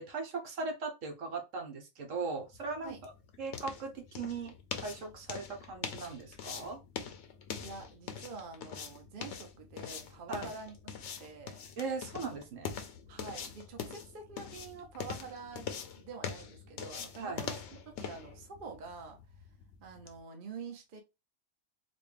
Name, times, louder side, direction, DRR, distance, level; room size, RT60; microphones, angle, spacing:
voice 1, 0.0-3.1 3.4-6.8 10.3-10.5 11.8-12.8 17.2-17.4, right 4 dB, 70° right, 3 dB, 1.3 m, -39 dB
sound 1, 2.4-20.2, left 7 dB, 65° left, 0.9 m, -43 dB
voice 2, 7.6-10.7 11.2-11.6 13.1-15.7 16.0-19.2 19.8-21.0, right 5 dB, 45° right, 3 dB, 0.9 m, -46 dB
4.0 x 2.3 x 3.3 m, 0.24 s
omnidirectional pair, 1.4 m